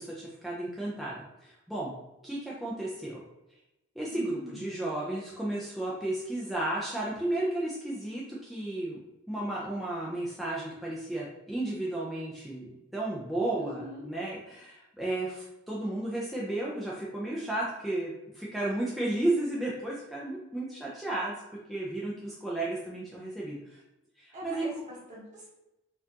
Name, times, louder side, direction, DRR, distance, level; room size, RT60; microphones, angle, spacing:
voice 1, 0.0-1.9 2.2-3.2 4.0-9.0 9.3-21.3 21.7-23.8 24.2-24.6, right 1 dB, ahead, -6 dB, 0.5 m, -33 dB
voice 2, 4.1-4.6 13.5-14.1 24.3-25.5, equal, 35° right, -5 dB, 1.3 m, -44 dB
4.3 x 2.5 x 2.8 m, 0.93 s
head